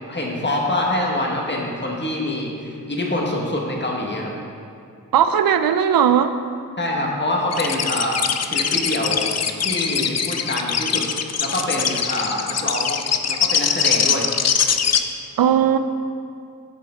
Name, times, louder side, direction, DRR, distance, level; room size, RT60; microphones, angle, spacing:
voice 1, 0.1-4.3 6.8-8.2 8.4-9.3 9.6-11.1 11.4-13.0 13.3-14.3, left 1 dB, 30° left, -1 dB, 1.5 m, -25 dB
voice 2, 5.1-6.4 15.4-15.8, right 8 dB, 75° right, 10 dB, 0.5 m, -17 dB
sound 1, 7.5-15.0, left 7 dB, 45° left, 0.5 m, -22 dB
9.3 x 5.7 x 3.7 m, 2.4 s
cardioid pair, 55°, 36 cm